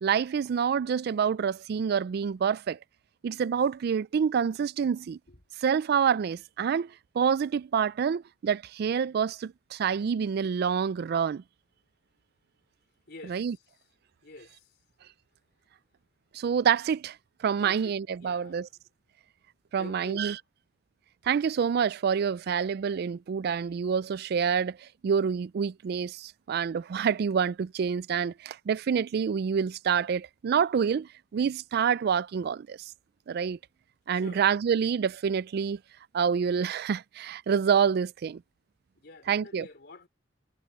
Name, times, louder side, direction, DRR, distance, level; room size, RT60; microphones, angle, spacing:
voice 1, 0.0-2.8 3.2-5.2 5.6-11.4 13.3-13.6 16.3-18.7 19.7-20.3 21.3-32.9 33.3-33.6 34.1-35.8 36.1-38.4 39.3-39.7, right 7 dB, 55° right, 0.3 m, -27 dB
voice 2, 13.1-13.8 14.2-14.8 17.6-18.8 19.8-20.3 34.1-34.4 39.0-40.1, left 2 dB, 60° left, 3.8 m, -48 dB
head